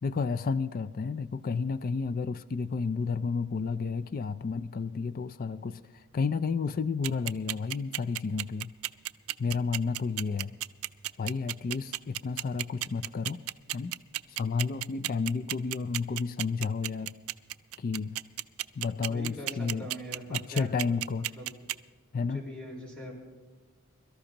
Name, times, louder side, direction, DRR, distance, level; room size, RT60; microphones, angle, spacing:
voice 1, 0.0-8.7 9.4-10.5 11.2-13.4 13.7-13.9 14.4-17.1 17.8-18.2 18.8-19.9 20.3-21.3 22.1-22.4, left 4 dB, 40° left, 13 dB, 0.4 m, -31 dB
sound 1, 7.0-21.7, right 16 dB, 80° right, 0.4 m, -32 dB
voice 2, 19.1-21.0 21.4-21.5 22.2-23.2, equal, 5° left, -3 dB, 4.2 m, -42 dB
23.0 x 13.0 x 2.9 m, 1.4 s
head